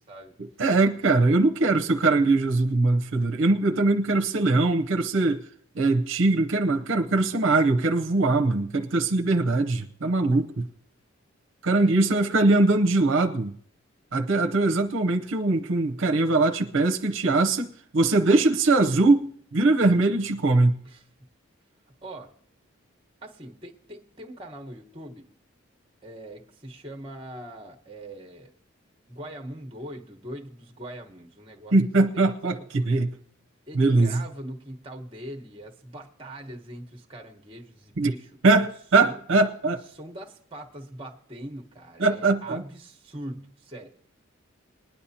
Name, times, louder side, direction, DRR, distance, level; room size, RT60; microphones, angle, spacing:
voice 1, 0.1-0.4 11.8-12.5 20.8-21.0 22.0-22.3 23.2-25.3 26.0-28.5 29.1-31.7 32.6-32.9 33.7-38.3 39.0-39.3 39.9-44.0, right 1 dB, 25° right, 1.1 m, -42 dB
voice 2, 0.6-5.5 5.7-10.7 11.6-13.5 14.1-20.8 31.7-33.1 33.7-34.2 38.0-38.1 38.4-39.8 42.0-42.6, right 2 dB, 65° right, 0.7 m, -22 dB
20.5 x 10.5 x 2.8 m
head